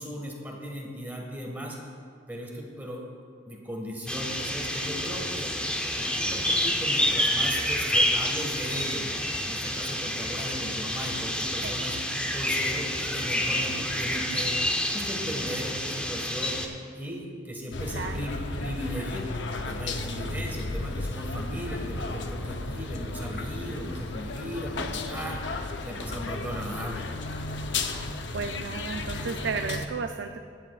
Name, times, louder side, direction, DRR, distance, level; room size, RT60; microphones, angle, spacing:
voice 1, 0.0-1.8 2.3-3.0 3.4-5.5 6.0-9.1 9.5-12.0 12.3-14.5 14.9-16.6 17.0-27.0, equal, 10° right, -1 dB, 1.7 m, -37 dB
sound 1, 4.1-16.7, left 1 dB, 5° left, 0.8 m, -28 dB
sound 2, 17.7-29.9, left 2 dB, 75° left, 0.8 m, -34 dB
voice 2, 17.9-18.2 28.3-30.5, right 5 dB, 70° right, 6 dB, 0.4 m, -33 dB
19.5 x 10.5 x 2.5 m, 2.2 s
head